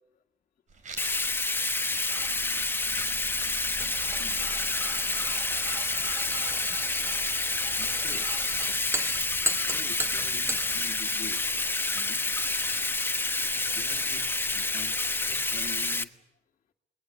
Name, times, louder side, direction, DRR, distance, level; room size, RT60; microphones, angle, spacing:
sound 1, 0.7-15.9, right 4 dB, 45° right, 4.4 m, -53 dB
Bathtub (filling or washing), 1.0-16.0, left 3 dB, 10° left, 1.2 m, -28 dB
sound 2, 2.1-10.8, right 1 dB, 15° right, 1.7 m, -38 dB
voice 1, 4.0-4.5 6.6-6.8 7.8-8.4 8.8-9.0 9.6-11.5 11.9-12.5 13.6-16.2, left 7 dB, 45° left, -1 dB, 1.9 m, -47 dB
28.0 x 22.0 x 8.4 m, 0.81 s
cardioid pair, 110°, 17 cm